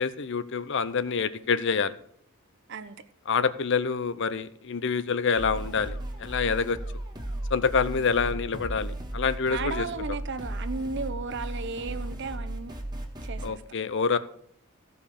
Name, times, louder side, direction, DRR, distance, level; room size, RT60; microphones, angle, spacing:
voice 1, 0.0-1.9 3.3-6.8 7.5-9.9 13.4-14.2, left 5 dB, 60° left, 0.7 m, -27 dB
sound 1, 5.3-13.5, right 1 dB, 20° right, 1.7 m, -35 dB
voice 2, 9.5-12.7 13.2-13.6, right 4 dB, 55° right, 0.8 m, -34 dB
15.0 x 5.5 x 6.6 m
head